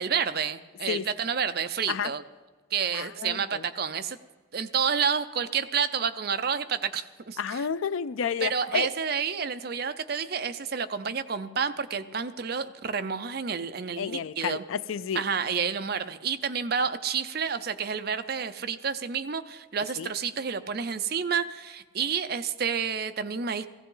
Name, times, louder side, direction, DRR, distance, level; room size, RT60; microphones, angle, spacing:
voice 1, 0.0-2.2 2.7-4.2 4.5-7.7 8.4-14.6 15.1-23.7, right 6 dB, 50° right, 0.6 m, -29 dB
voice 2, 2.9-3.6 7.4-8.9 14.0-15.2 20.0-20.1, left 7 dB, 85° left, 0.4 m, -31 dB
16.5 x 16.0 x 3.9 m
head